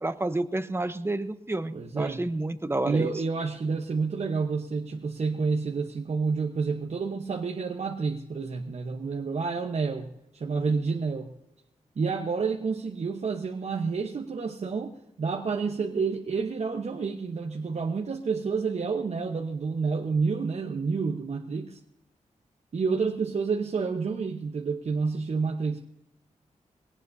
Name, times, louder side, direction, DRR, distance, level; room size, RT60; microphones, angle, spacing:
voice 1, 0.0-3.1, right 2 dB, 20° right, 11 dB, 0.9 m, -30 dB
voice 2, 1.7-2.2 2.8-11.3 12.0-21.8 22.7-25.8, right 4 dB, 55° right, 2 dB, 1.1 m, -29 dB
21.5 x 18.0 x 2.7 m, 0.85 s
wide cardioid pair, 85°, 13 cm